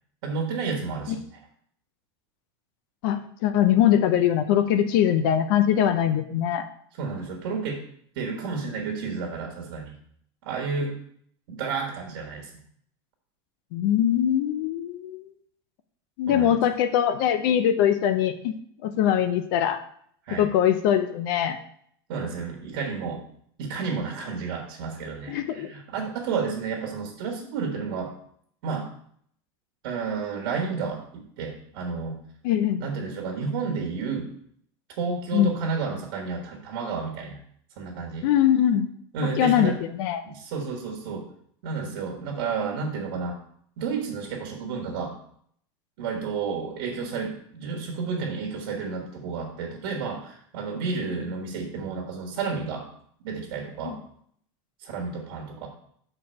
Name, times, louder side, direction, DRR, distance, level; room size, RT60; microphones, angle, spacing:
voice 1, 0.2-1.2 6.9-7.8 8.1-9.9 10.4-10.9 11.5-12.5 16.3-16.6 20.2-20.5 22.1-23.2 23.6-28.1 28.6-28.9 29.8-32.2 32.8-34.3 35.0-37.4 37.8-38.3 39.1-39.8 40.2-41.3 41.6-43.4 43.8-45.2 46.0-52.9 53.2-54.0 54.8-55.7, right 5 dB, 60° right, 1 dB, 1.6 m, -31 dB
voice 2, 3.0-6.6 13.7-15.3 16.2-18.5 18.8-19.8 20.3-21.6 25.3-25.7 32.4-32.8 35.3-35.5 38.2-38.9 39.4-39.7 40.0-40.2 53.9-54.0, left 10 dB, 55° left, 10 dB, 0.6 m, -22 dB
6.0 x 4.5 x 6.3 m, 0.64 s
supercardioid pair, 165°, 13 cm